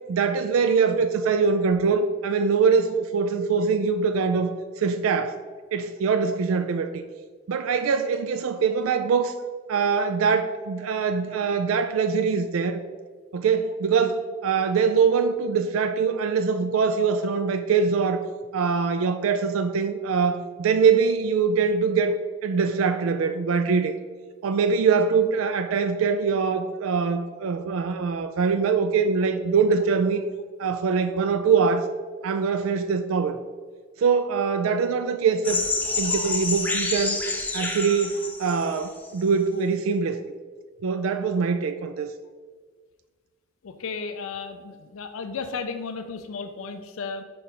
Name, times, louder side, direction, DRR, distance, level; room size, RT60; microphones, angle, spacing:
voice 1, 0.1-5.4 5.7-7.0 7.5-9.4 9.7-12.8 13.3-18.2 18.5-23.9 24.4-30.2 30.6-31.9 32.2-33.4 34.0-35.7 36.0-37.2 37.5-40.2 40.8-42.1, right 5 dB, 90° right, 8 dB, 0.4 m, -23 dB
sound 1, 35.4-39.1, left 3 dB, 10° left, 0.6 m, -28 dB
voice 2, 43.6-47.2, left 5 dB, 85° left, 8 dB, 0.5 m, -34 dB
4.9 x 4.6 x 5.3 m, 1.5 s
head